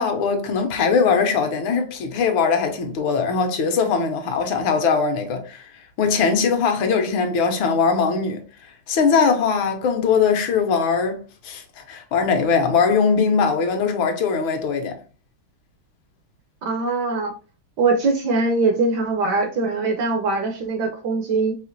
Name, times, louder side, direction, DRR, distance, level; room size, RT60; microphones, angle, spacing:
voice 1, 0.0-5.7 6.0-8.4 8.9-15.0, left 5 dB, 75° left, 1.5 m, -21 dB
voice 2, 16.6-17.3 17.8-21.6, right 3 dB, 70° right, 1.1 m, -22 dB
4.9 x 2.8 x 2.6 m
omnidirectional pair, 2.2 m